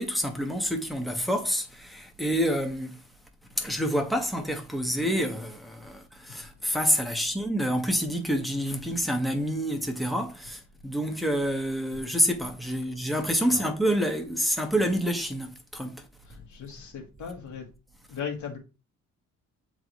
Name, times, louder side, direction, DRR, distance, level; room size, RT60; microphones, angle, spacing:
voice 1, 0.0-3.0 3.6-16.0, equal, ahead, 1.3 m, -28 dB
voice 2, 16.2-17.7 18.1-18.6, left 7 dB, 70° left, 2.2 m, -37 dB
7.5 x 4.0 x 3.1 m
cardioid pair, 90°, 30 cm